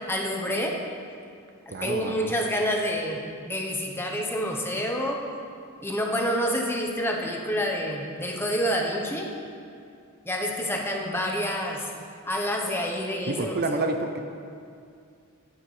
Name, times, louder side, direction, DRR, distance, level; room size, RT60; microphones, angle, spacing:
voice 1, 0.1-0.8 1.7-3.2 3.4-5.2 5.8-9.3 10.3-11.9 12.3-13.5, equal, 10° left, 0 dB, 0.9 m, -28 dB
voice 2, 1.7-2.3 13.3-14.2, right 2 dB, 45° right, 5 dB, 0.5 m, -29 dB
11.0 x 9.2 x 3.3 m, 2.4 s
head